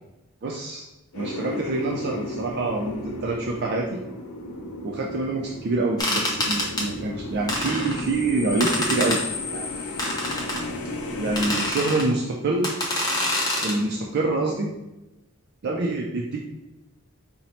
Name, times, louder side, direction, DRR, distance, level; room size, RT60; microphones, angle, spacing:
voice 1, 0.4-0.8 1.1-4.0 4.8-9.7 11.2-12.7 13.6-14.7 15.6-16.5, right 2 dB, 50° right, 0 dB, 0.4 m, -26 dB
sound 1, 1.1-11.7, left 2 dB, 90° left, 0.6 m, -34 dB
sound 2, 6.0-6.9 7.5-8.1 8.6-9.2 10.0-10.6 11.4-12.1 12.6-13.8, left 1 dB, 15° left, 0.6 m, -26 dB
4.2 x 2.0 x 4.1 m, 0.95 s
head